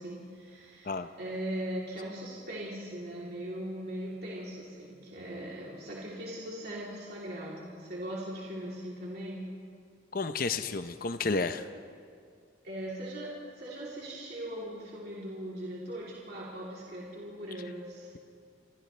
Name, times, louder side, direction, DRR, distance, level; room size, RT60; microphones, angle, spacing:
voice 1, 0.0-9.4 12.6-18.1, right 1 dB, 55° right, -6 dB, 3.4 m, -39 dB
voice 2, 10.1-11.7, left 4 dB, 50° left, 10 dB, 0.7 m, -31 dB
28.0 x 27.5 x 3.4 m, 2.2 s
head